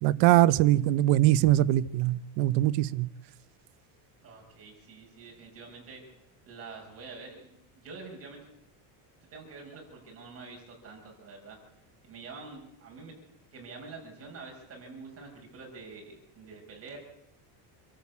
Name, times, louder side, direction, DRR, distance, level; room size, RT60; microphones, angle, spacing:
voice 1, 0.0-3.1, right 14 dB, 60° right, 0.8 m, -22 dB
voice 2, 4.2-6.0 6.5-8.5 9.3-11.6 12.0-13.1 13.5-17.0, right 4 dB, 30° right, 6.0 m, -46 dB
27.0 x 13.0 x 8.5 m
cardioid pair, 170°, 48 cm